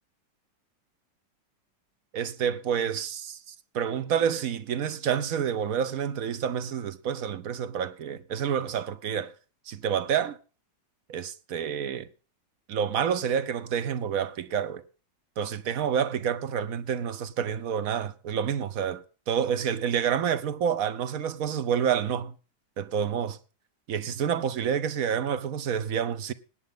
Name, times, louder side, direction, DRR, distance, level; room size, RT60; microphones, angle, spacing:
voice 1, 2.1-9.3 9.7-10.4 11.1-12.1 12.7-14.8 15.4-22.4 22.8-23.4 23.9-26.3, right 8 dB, 60° right, 1.1 m, -28 dB
18.0 x 9.3 x 3.7 m
omnidirectional pair, 1.9 m